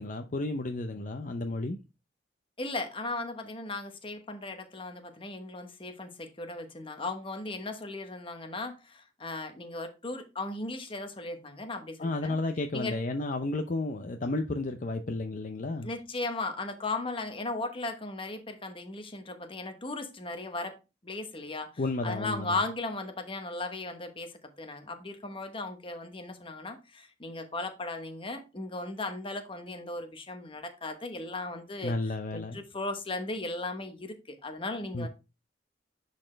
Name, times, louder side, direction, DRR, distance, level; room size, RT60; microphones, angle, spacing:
voice 1, 0.0-1.8 12.0-15.9 21.8-22.6 31.8-32.6 34.9-35.1, left 2 dB, 45° left, 0.6 m, -32 dB
voice 2, 2.6-12.4 12.7-13.0 15.8-20.8 21.0-35.1, left 2 dB, 30° left, 1.1 m, -37 dB
10.5 x 4.2 x 3.2 m
head